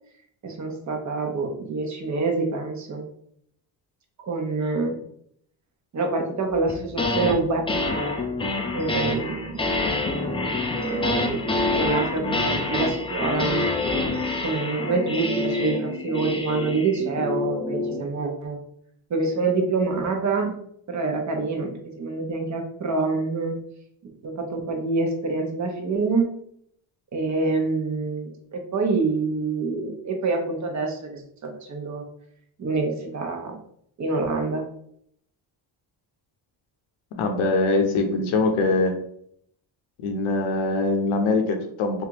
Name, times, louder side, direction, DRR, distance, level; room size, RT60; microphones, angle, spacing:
voice 1, 0.4-3.0 4.2-5.0 5.9-7.9 8.7-9.6 10.9-11.4 11.7-13.7 14.4-18.6 19.1-20.5 20.9-21.7 22.0-23.6 24.2-26.3 27.1-32.0 32.6-33.5 34.0-34.6, right 3 dB, 35° right, 3 dB, 0.8 m, -26 dB
sound 1, 6.7-7.4 7.7-18.1, left 2 dB, 15° left, 0.3 m, -26 dB
voice 2, 37.2-38.9 40.0-42.0, left 3 dB, 85° left, 4 dB, 0.8 m, -23 dB
3.3 x 2.5 x 2.9 m, 0.68 s
cardioid pair, 100°, 48 cm